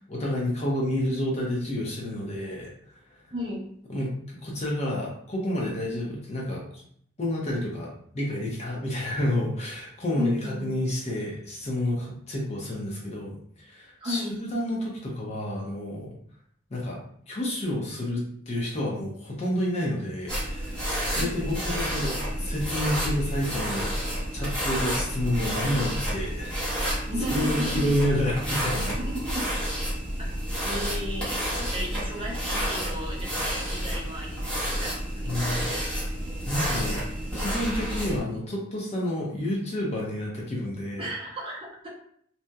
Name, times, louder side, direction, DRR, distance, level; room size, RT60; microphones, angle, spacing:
voice 1, 0.1-2.7 3.9-6.8 7.2-16.1 16.7-17.0 17.3-20.9 21.1-23.9 24.3-27.0 27.3-29.0 35.2-35.7 36.4-37.0 37.3-41.1, left 1 dB, 30° left, -3 dB, 0.5 m, -29 dB
voice 2, 3.3-3.7 10.1-10.7 14.0-14.3 21.2-22.1 27.1-27.9 29.0-29.5 30.2-30.3 30.6-35.8 41.0-41.9, equal, 25° right, -3 dB, 0.5 m, -34 dB
sound 1, 20.3-38.2, equal, 5° left, 0.8 m, -30 dB
2.7 x 2.0 x 2.2 m, 0.63 s
head